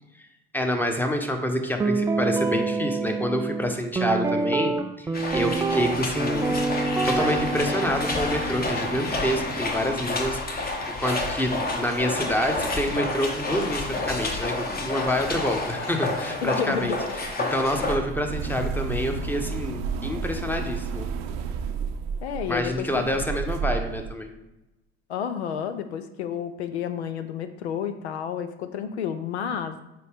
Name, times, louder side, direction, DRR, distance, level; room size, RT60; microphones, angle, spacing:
voice 1, 0.5-6.5 7.0-17.0 17.4-21.1 22.5-24.3, equal, 5° left, 4 dB, 0.9 m, -27 dB
Guitar, 1.8-10.0, right 3 dB, 10° right, 0.3 m, -27 dB
sound 1, 5.1-18.0, left 2 dB, 30° left, 1.2 m, -29 dB
voice 2, 16.4-17.0 22.2-23.2 25.1-29.8, left 8 dB, 80° left, 9 dB, 0.5 m, -31 dB
sound 2, 16.8-24.1, right 5 dB, 55° right, 0.6 m, -31 dB
6.9 x 4.5 x 3.4 m, 0.95 s
figure-of-eight pair, 55°, 32 cm